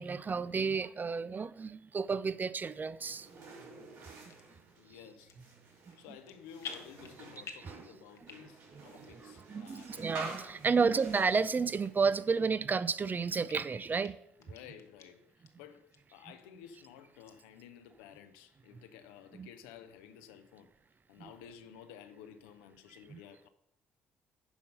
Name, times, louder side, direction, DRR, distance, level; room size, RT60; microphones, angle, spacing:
voice 1, 0.0-3.3 8.7-8.8 9.5-14.2 19.3-19.5 23.1-23.2, right 5 dB, 30° right, 0.4 m, -31 dB
sound 1, 3.0-12.4, right 3 dB, 65° right, 3.6 m, -49 dB
sound 2, 4.3-4.5 5.1-5.6 5.9-6.3 6.6-7.8 8.1-8.6 9.0-9.1 9.8-9.9 10.5-10.6 11.3-11.4 11.8-11.9 12.4-13.1 13.5-13.6 14.0-14.1 14.4-15.1 15.4-15.5 15.9-16.0 16.4-16.9 17.3-17.4, left 7 dB, 55° left, 1.0 m, -48 dB
voice 2, 4.8-5.4 5.7-10.1 10.7-11.0 14.4-20.7 21.1-23.5, left 9 dB, 75° left, 0.7 m, -53 dB
9.9 x 5.3 x 5.3 m
figure-of-eight pair, 50°, 6 cm